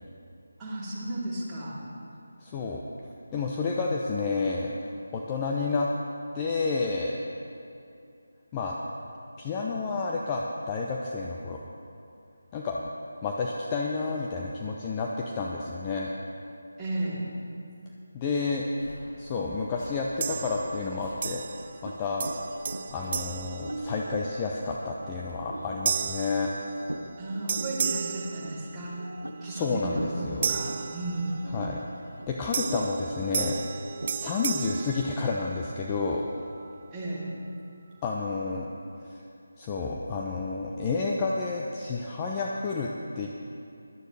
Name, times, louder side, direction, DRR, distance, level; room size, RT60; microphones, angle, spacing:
voice 1, 0.6-1.8 16.8-17.2 27.2-29.0 29.4-31.3 36.9-37.3, right 2 dB, 10° right, -12 dB, 3.2 m, -34 dB
voice 2, 2.4-2.8 3.3-4.7 5.1-5.9 6.3-7.1 8.5-8.8 9.4-11.6 12.5-12.8 13.2-16.1 18.1-18.6 19.2-21.4 21.8-22.3 22.9-26.5 29.4-30.6 31.5-31.8 32.3-33.6 34.1-36.3 38.0-38.7 39.1-39.2 39.6-43.3, left 4 dB, 20° left, -2 dB, 0.7 m, -30 dB
Subway metro underground, 18.7-25.3, left 1 dB, 65° left, 3.6 m, -47 dB
sound 1, 20.2-20.9 21.2-21.9 22.2-24.4 24.9-25.2 25.9-27.2 27.5-29.1 30.4-31.6 32.5-35.8, right 6 dB, 35° right, 0.3 m, -34 dB
sound 2, 21.8-34.3, right 1 dB, 85° right, 0.9 m, -41 dB
18.0 x 12.0 x 3.4 m, 2.6 s
figure-of-eight pair, 160°, 0 cm